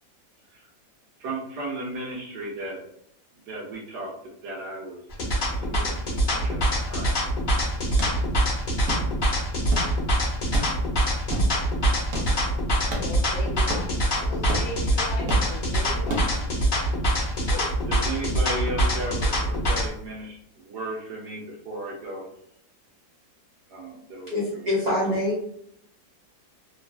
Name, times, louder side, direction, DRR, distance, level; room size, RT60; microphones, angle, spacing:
voice 1, 1.2-2.8 3.5-4.1 4.4-5.0 5.6-6.6 6.9-7.1 17.2-17.3 17.9-20.4 20.6-22.3 23.7-24.3, right 2 dB, 80° right, -3 dB, 1.2 m, -34 dB
sound 1, 5.1-19.9, right 1 dB, 40° left, 0.7 m, -24 dB
sound 2, 7.6-16.6, right 1 dB, 65° right, 0.9 m, -34 dB
voice 2, 13.0-13.9 14.1-16.3 17.4-17.7, left 2 dB, 60° left, -4 dB, 1.2 m, -38 dB
voice 3, 24.3-25.4, left 1 dB, 40° right, -8 dB, 0.6 m, -25 dB
3.0 x 2.3 x 2.3 m, 0.71 s
omnidirectional pair, 1.8 m